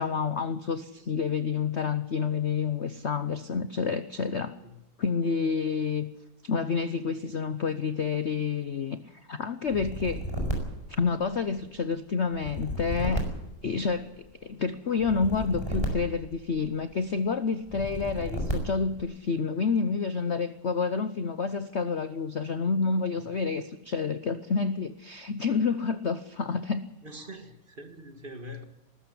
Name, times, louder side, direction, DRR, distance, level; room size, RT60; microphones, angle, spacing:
voice 1, 0.0-4.5 5.0-6.1 6.4-10.2 10.9-13.3 13.6-26.9, left 5 dB, 50° left, 12 dB, 0.9 m, -29 dB
sound 1, 9.7-11.7 12.3-14.3 15.0-16.9 17.7-19.0, equal, 15° left, 4.9 m, -33 dB
voice 2, 27.0-28.6, equal, 30° right, 7 dB, 2.0 m, -44 dB
20.5 x 13.0 x 9.9 m, 0.91 s
omnidirectional pair, 2.0 m